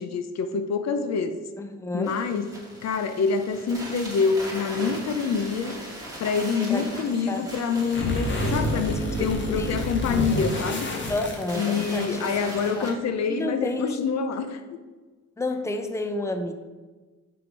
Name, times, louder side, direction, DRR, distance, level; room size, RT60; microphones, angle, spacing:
voice 1, 0.0-1.4 1.9-2.5 2.8-5.8 6.2-10.9 11.5-14.6, left 5 dB, 60° left, 9 dB, 0.7 m, -26 dB
voice 2, 1.6-2.2 6.7-6.9 7.3-7.5 9.0-9.8 11.1-12.9 13.3-14.0 15.4-16.5, left 2 dB, 10° left, 6 dB, 0.7 m, -31 dB
sound 1, 2.0-12.9, right 1 dB, 10° right, 2.2 m, -40 dB
sound 2, 7.8-12.0, left 1 dB, 40° left, 1.4 m, -28 dB
5.9 x 5.0 x 5.2 m, 1.3 s
cardioid pair, 90°, 30 cm